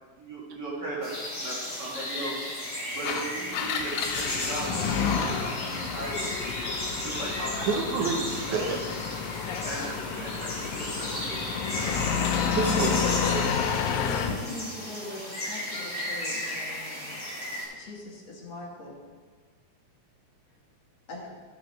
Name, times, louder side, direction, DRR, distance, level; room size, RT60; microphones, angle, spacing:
voice 1, 0.2-1.1 1.4-2.4 2.9-6.6 7.0-8.9 9.6-12.1, right 1 dB, 40° right, -5 dB, 1.8 m, -38 dB
sound 1, 1.0-17.7, left 1 dB, 10° left, 2.2 m, -35 dB
Engine, 2.9-14.4, left 7 dB, 80° left, 2.1 m, -30 dB
voice 2, 7.6-8.8 12.1-13.6, right 5 dB, 80° right, 4 dB, 2.3 m, -30 dB
voice 3, 14.0-17.2 17.7-19.0 21.1-21.3, left 2 dB, 60° left, -2 dB, 2.5 m, -41 dB
13.0 x 6.3 x 3.1 m, 1.5 s
omnidirectional pair, 3.5 m